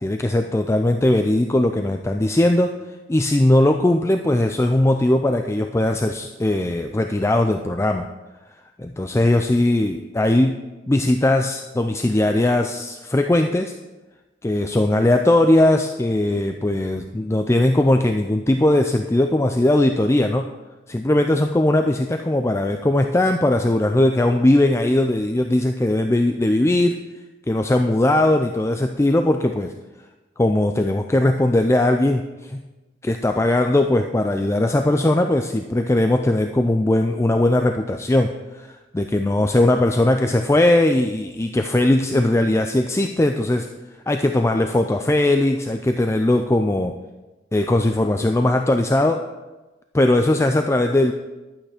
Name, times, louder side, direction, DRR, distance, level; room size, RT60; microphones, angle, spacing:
voice 1, 0.0-2.7 3.1-8.1 8.8-13.7 14.4-20.5 20.9-27.0 27.5-29.7 30.4-32.6 33.0-43.7 44.1-46.9 47.5-49.2 49.9-51.1, left 1 dB, 15° left, 6 dB, 0.4 m, -19 dB
11.5 x 8.7 x 5.0 m, 1.1 s
head